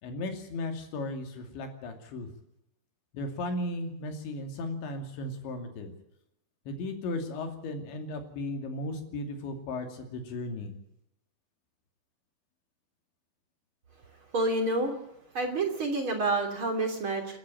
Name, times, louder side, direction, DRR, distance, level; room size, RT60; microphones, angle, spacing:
voice 1, 0.0-2.3 3.1-5.9 6.7-10.7, left 2 dB, 75° left, 5 dB, 4.9 m, -36 dB
voice 2, 14.3-14.9 15.3-17.4, right 2 dB, 30° right, 4 dB, 3.2 m, -28 dB
29.0 x 11.5 x 9.0 m, 0.84 s
omnidirectional pair, 5.3 m